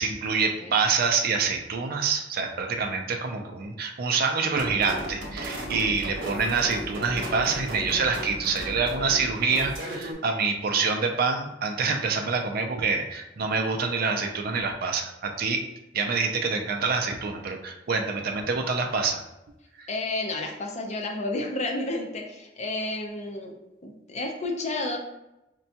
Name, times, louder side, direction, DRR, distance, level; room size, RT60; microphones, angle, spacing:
voice 1, 0.0-15.7 15.9-19.2 19.8-19.9, right 4 dB, 55° right, 4 dB, 0.4 m, -26 dB
sound 1, 4.6-10.1, equal, 70° right, 1.0 m, -35 dB
voice 2, 19.9-23.6 23.8-25.0, left 2 dB, 40° left, 2 dB, 0.6 m, -31 dB
5.2 x 2.2 x 2.8 m, 0.92 s
head